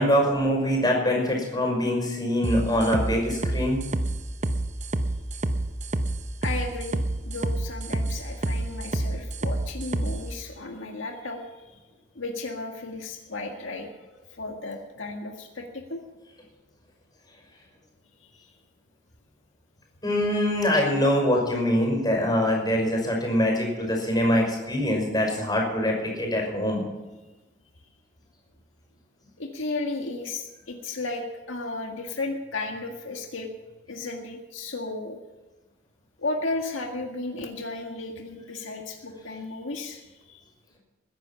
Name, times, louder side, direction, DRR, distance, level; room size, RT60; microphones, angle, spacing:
voice 1, 0.0-3.8 20.0-26.8, equal, 20° left, 1 dB, 5.8 m, -24 dB
sound 1, 2.4-10.2, right 1 dB, 35° right, 0.8 m, -28 dB
voice 2, 6.4-11.8 12.2-13.9 14.3-16.0 18.2-18.5 29.4-33.5 33.9-35.2 36.2-40.4, left 2 dB, 85° left, 2 dB, 1.9 m, -34 dB
21.0 x 10.5 x 6.0 m, 1.1 s
head